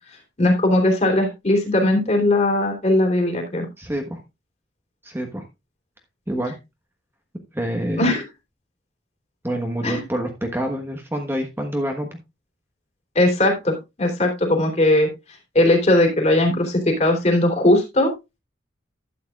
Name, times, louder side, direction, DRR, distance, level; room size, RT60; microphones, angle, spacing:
voice 1, 0.4-3.7 7.9-8.2 9.8-10.0 13.1-15.1 15.5-18.1, left 1 dB, 35° left, 2 dB, 3.1 m, -19 dB
voice 2, 3.8-4.2 5.0-5.4 6.3-6.5 7.5-8.1 9.4-12.1, right 1 dB, 15° right, 3 dB, 1.3 m, -26 dB
12.0 x 9.0 x 2.4 m, 0.24 s
head